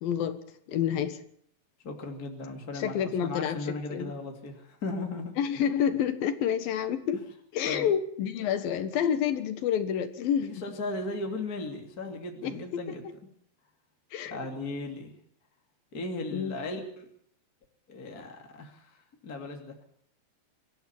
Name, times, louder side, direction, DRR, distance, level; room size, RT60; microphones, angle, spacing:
voice 1, 0.0-0.4 0.7-1.2 2.7-4.1 5.4-7.2 7.5-10.6 12.4-13.1 14.1-14.4 16.3-16.6, left 8 dB, 65° left, 11 dB, 3.0 m, -29 dB
voice 2, 1.8-5.3 7.1-7.2 7.7-7.9 10.4-13.0 14.2-15.1 15.9-17.1 17.9-19.8, left 2 dB, 25° left, 3 dB, 2.6 m, -37 dB
25.0 x 15.0 x 7.1 m, 0.66 s
omnidirectional pair, 4.8 m